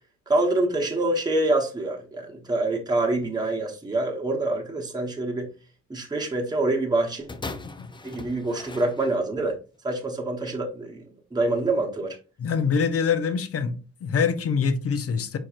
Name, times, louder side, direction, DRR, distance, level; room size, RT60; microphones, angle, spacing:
voice 1, 0.3-5.5 5.9-7.3 8.0-9.6 9.8-11.0 11.3-12.2, right 2 dB, 15° right, 1.1 m, -26 dB
sound 1, 7.3-9.5 10.3-10.4, left 3 dB, 15° left, 0.6 m, -39 dB
voice 2, 12.4-13.7 14.0-15.4, left 6 dB, 50° left, 0.8 m, -24 dB
4.6 x 4.5 x 2.5 m
cardioid pair, 90°, 30 cm